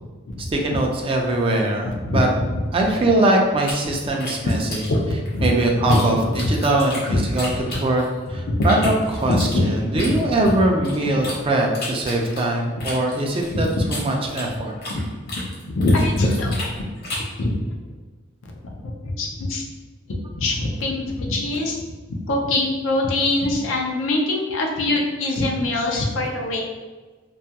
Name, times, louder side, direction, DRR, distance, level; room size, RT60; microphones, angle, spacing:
voice 1, 0.5-2.3 2.7-4.8 5.4-8.0 8.3-14.7, right 1 dB, 30° right, 0 dB, 0.3 m, -22 dB
voice 2, 1.8-2.2 4.4-4.5 4.9-5.0 5.3-5.5 5.9-6.0 6.4-6.5 7.1-7.5 8.5-8.6 9.3-10.2 13.5-13.8 14.9-15.1 15.3-15.4 15.8-16.8 17.4-17.5 18.6-18.7 19.0-19.6 20.1-21.8 22.3-26.6, left 2 dB, 80° left, 1 dB, 0.5 m, -23 dB
sound 1, 3.6-6.0 6.3-8.2 8.6-11.4 11.7-15.0 15.3-17.4, left 2 dB, 55° left, 0.8 m, -34 dB
2.3 x 2.2 x 2.7 m, 1.3 s
head